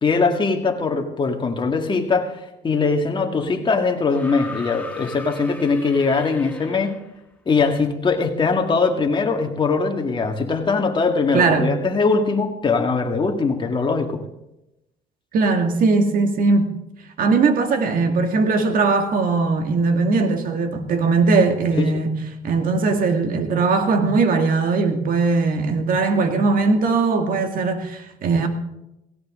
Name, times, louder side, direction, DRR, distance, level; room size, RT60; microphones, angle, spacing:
voice 1, 0.0-6.9 7.5-14.2 21.8-22.0, left 4 dB, 30° left, 2.1 m, -21 dB
sound 1, 4.1-7.2 8.4-8.5, left 2 dB, 10° left, 1.9 m, -38 dB
voice 2, 11.3-11.7 15.3-16.7 17.2-22.1 22.4-28.5, right 4 dB, 55° right, 2.0 m, -19 dB
17.0 x 17.0 x 3.8 m
cardioid pair, 110°, 17 cm